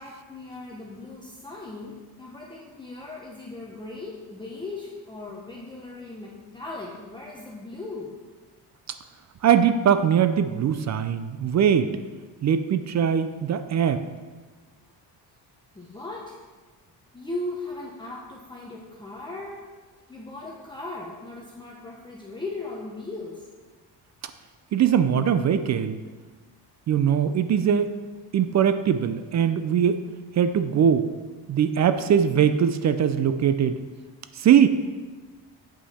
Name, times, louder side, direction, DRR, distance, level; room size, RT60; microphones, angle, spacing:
voice 1, 0.0-8.2 15.7-16.4 17.1-19.7 20.1-23.5, left 2 dB, 10° left, -3 dB, 0.8 m, -38 dB
voice 2, 9.4-11.9 12.4-14.0 24.7-26.0 26.9-27.9 28.3-30.0 30.3-31.1 31.5-33.8 34.3-34.7, right 8 dB, 45° right, 11 dB, 0.4 m, -21 dB
7.9 x 5.5 x 4.2 m, 1.4 s
cardioid pair, 115°, 41 cm